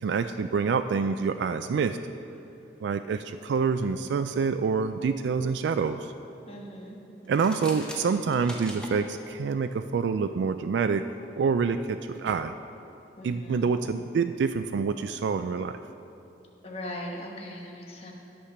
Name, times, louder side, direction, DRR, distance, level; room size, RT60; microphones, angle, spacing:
voice 1, 0.0-2.0 2.8-6.1 7.3-11.1 11.4-12.5 13.2-15.8, right 5 dB, 75° right, 9 dB, 0.3 m, -27 dB
voice 2, 6.5-7.0 13.2-13.7 16.6-18.1, left 1 dB, 35° left, -1 dB, 1.3 m, -39 dB
sound 1, 7.2-9.0, left 1 dB, 5° left, 1.0 m, -41 dB
10.0 x 6.6 x 5.7 m, 2.9 s
head